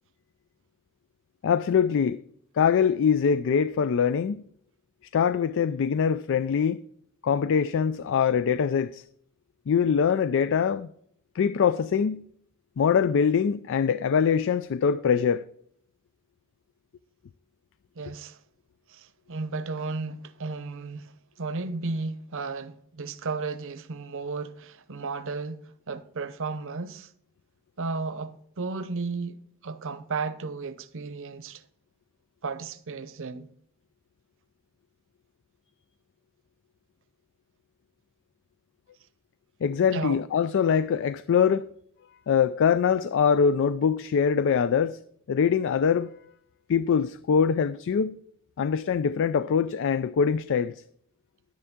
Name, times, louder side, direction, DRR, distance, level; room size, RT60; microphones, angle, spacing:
voice 1, 1.4-2.2 2.5-4.4 5.1-6.8 7.2-9.0 9.7-10.9 11.3-12.3 12.8-15.4 39.6-41.7 42.3-45.0 45.3-46.1 46.7-48.2 48.6-50.8, left 7 dB, 60° left, 0.4 m, -23 dB
voice 2, 18.0-18.4 18.9-27.1 27.8-31.6 32.4-33.5 39.9-40.2, right 4 dB, 60° right, 0.7 m, -34 dB
11.0 x 9.4 x 3.6 m
head